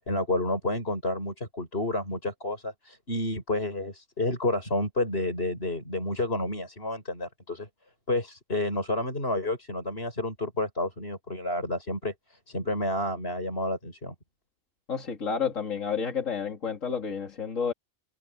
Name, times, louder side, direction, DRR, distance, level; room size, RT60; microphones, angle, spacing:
voice 1, 0.0-7.7 8.1-14.1, left 1 dB, 45° left, 6.6 m, -30 dB
voice 2, 14.9-17.7, left 6 dB, 70° left, 2.6 m, -30 dB
omnidirectional pair, 1.4 m